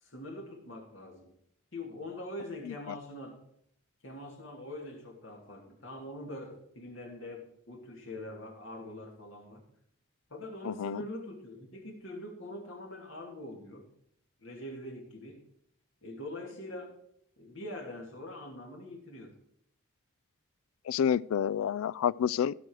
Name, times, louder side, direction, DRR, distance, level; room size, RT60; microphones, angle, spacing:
voice 1, 0.0-1.3 1.7-3.4 4.0-9.6 10.3-13.8 14.4-15.4 16.0-17.0 17.4-19.4, left 1 dB, 65° left, 2.8 m, -43 dB
voice 2, 10.6-11.0 20.9-22.5, left 8 dB, 85° left, 0.3 m, -29 dB
16.0 x 6.2 x 4.8 m
head